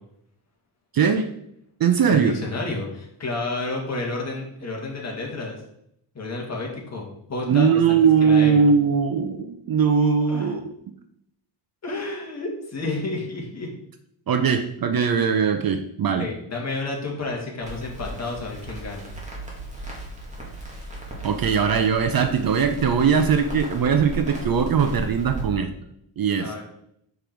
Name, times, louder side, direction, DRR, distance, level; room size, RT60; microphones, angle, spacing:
voice 1, 0.9-1.3 1.8-2.4 7.5-10.7 14.3-16.3 21.2-25.7 26.2-26.5, right 6 dB, 45° right, 7 dB, 0.6 m, -20 dB
voice 2, 2.0-5.6 6.2-8.7 10.3-10.5 11.8-13.7 16.2-19.2 26.4-26.6, left 3 dB, 30° left, -1 dB, 1.9 m, -31 dB
Crackle, 17.6-25.4, right 1 dB, 15° right, 2.0 m, -35 dB
6.8 x 5.3 x 4.5 m, 0.73 s
wide cardioid pair, 155°, 49 cm